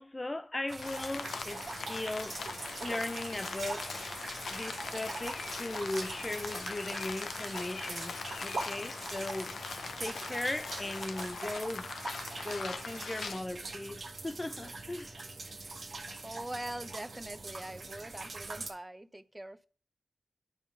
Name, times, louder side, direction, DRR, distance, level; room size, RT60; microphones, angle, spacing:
voice 1, 0.0-2.5 2.8-4.0 4.5-9.6 10.0-11.9 12.4-15.2, left 2 dB, 30° left, 0.5 m, -38 dB
sound 1, 0.7-18.7, right 3 dB, 70° right, 1.4 m, -43 dB
Rain, 0.8-13.4, left 5 dB, 90° left, 0.6 m, -41 dB
voice 2, 16.2-19.7, right 1 dB, 20° right, 0.6 m, -43 dB
9.3 x 3.8 x 5.2 m
cardioid pair, 45°, 0 cm